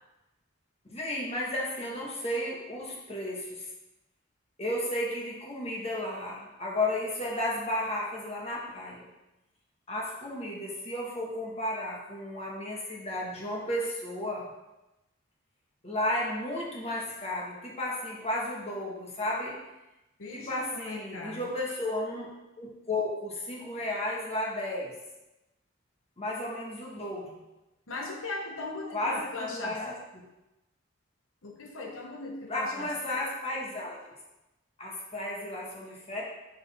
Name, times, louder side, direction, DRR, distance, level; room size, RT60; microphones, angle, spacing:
voice 1, 0.9-3.7 4.6-9.1 9.9-14.5 15.8-19.6 20.3-24.9 26.2-27.4 28.9-29.9 32.5-34.0 34.8-36.2, left 1 dB, 30° left, -4 dB, 1.5 m, -33 dB
voice 2, 20.2-21.5 27.9-29.8 31.4-32.9, left 3 dB, 80° left, 0 dB, 1.0 m, -38 dB
6.6 x 6.4 x 3.6 m, 0.99 s
head